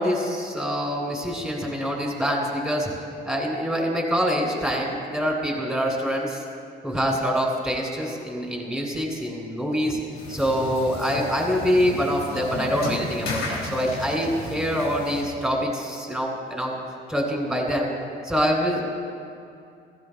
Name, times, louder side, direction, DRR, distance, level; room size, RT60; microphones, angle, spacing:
voice 1, 0.0-2.9 3.2-6.4 6.8-10.0 10.3-16.8 17.1-17.9 18.2-18.8, equal, ahead, -1 dB, 3.1 m, -25 dB
sound 1, 10.1-15.2, left 3 dB, 80° left, 2.3 m, -34 dB
15.5 x 15.0 x 2.4 m, 2.5 s
cardioid pair, 90°, 20 cm